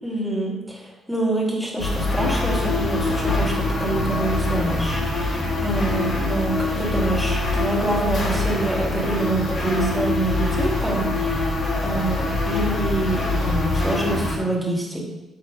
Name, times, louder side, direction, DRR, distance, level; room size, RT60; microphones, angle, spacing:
voice 1, 0.0-11.5 11.8-15.0, right 2 dB, 5° right, -4 dB, 2.8 m, -26 dB
sound 1, 1.8-14.4, left 2 dB, 55° left, 3.0 m, -24 dB
10.5 x 7.3 x 2.5 m, 1.0 s
cardioid pair, 100°, 0 cm